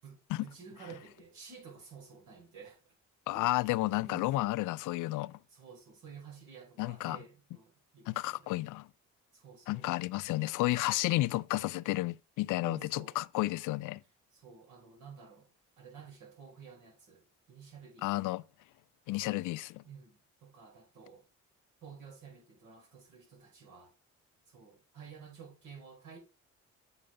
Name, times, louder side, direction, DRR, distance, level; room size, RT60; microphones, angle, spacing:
voice 1, 0.0-2.8 3.3-3.4 4.1-4.5 5.5-8.5 9.3-9.9 12.6-13.2 14.3-15.5 15.8-18.2 19.8-21.2 21.8-23.9 24.5-26.2, right 6 dB, 75° right, 5.4 m, -52 dB
voice 2, 3.3-5.4 6.8-7.2 8.1-8.9 9.7-14.0 18.0-18.4 19.1-19.8, left 18 dB, 85° left, 0.5 m, -32 dB
8.7 x 6.5 x 3.7 m
cardioid pair, 90°, 30 cm